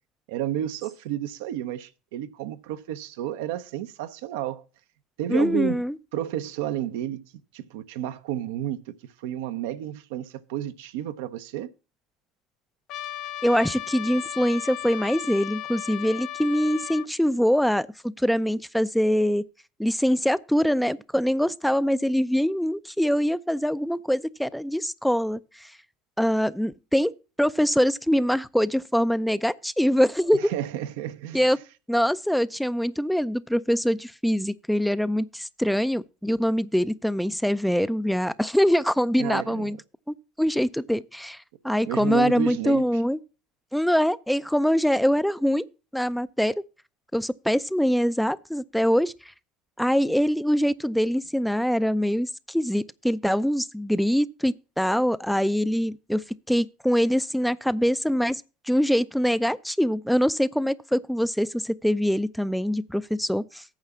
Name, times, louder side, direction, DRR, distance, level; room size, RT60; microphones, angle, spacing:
voice 1, 0.3-4.6 5.2-5.8 6.1-7.2 7.5-11.7 30.3-31.5 39.2-39.8 41.9-42.9, right 12 dB, 70° right, 0.7 m, -31 dB
voice 2, 5.3-6.0 13.4-17.9 18.2-19.4 19.8-25.7 26.2-27.1 27.4-30.4 31.3-31.6 31.9-39.8 40.1-43.2 43.7-45.6 45.9-46.5 47.1-49.1 49.8-63.6, equal, ahead, 0.4 m, -24 dB
Trumpet, 12.9-17.1, left 13 dB, 55° left, 0.7 m, -35 dB
8.9 x 5.6 x 7.1 m
hypercardioid pair, 70°, 0 cm